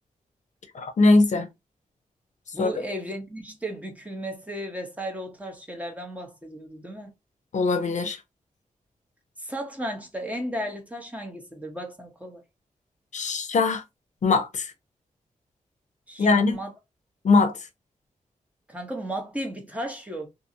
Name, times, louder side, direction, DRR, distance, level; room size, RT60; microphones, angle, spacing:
voice 1, 0.7-1.5 2.6-2.7 7.5-8.2 13.1-13.8 14.2-14.7 16.2-16.6 17.2-17.5, left 3 dB, 60° left, 0.6 m, -21 dB
voice 2, 2.5-7.1 9.4-12.4 16.1-16.7 18.7-20.3, right 1 dB, 10° right, 0.8 m, -35 dB
2.6 x 2.5 x 2.7 m
wide cardioid pair, 130°, 14 cm